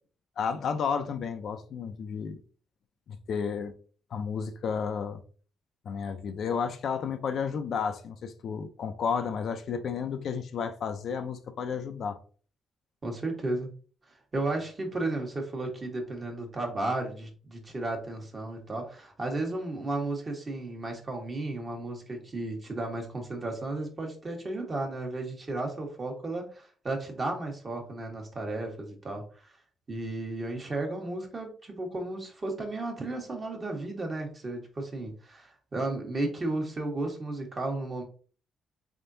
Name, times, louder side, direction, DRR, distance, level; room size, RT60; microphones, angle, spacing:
voice 1, 0.4-2.4 3.1-3.7 4.1-5.2 5.9-12.2, left 6 dB, 60° left, 0.5 m, -32 dB
voice 2, 13.0-13.7 14.3-29.5 29.9-38.0, right 2 dB, 35° right, 1.2 m, -34 dB
3.6 x 3.5 x 2.6 m
cardioid pair, 90°, 0 cm